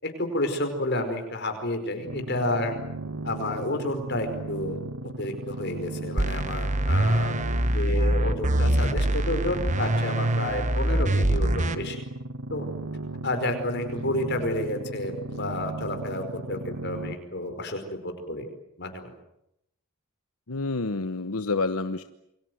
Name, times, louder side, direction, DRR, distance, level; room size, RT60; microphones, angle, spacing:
voice 1, 0.0-2.7 3.2-4.8 5.2-7.3 7.7-12.0 12.5-12.6 13.2-18.5 18.8-19.1, left 1 dB, 50° left, 7 dB, 4.9 m, -30 dB
sound 1, 2.1-17.2, right 2 dB, 75° right, 1.4 m, -36 dB
sound 2, 6.2-11.8, right 1 dB, 35° right, 1.4 m, -24 dB
voice 2, 20.5-22.0, left 3 dB, 80° left, 9 dB, 1.1 m, -28 dB
28.5 x 24.5 x 7.9 m, 0.81 s
head